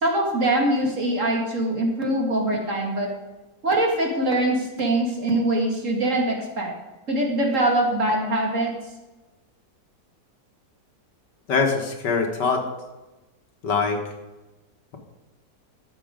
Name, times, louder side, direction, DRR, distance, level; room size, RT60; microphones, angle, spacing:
voice 1, 0.0-3.1 3.6-6.7 7.1-8.7, right 1 dB, 45° right, 0 dB, 2.3 m, -23 dB
voice 2, 11.5-12.6 13.6-14.0, left 4 dB, 75° left, 2 dB, 2.1 m, -23 dB
14.0 x 6.3 x 5.2 m, 1.1 s
omnidirectional pair, 1.9 m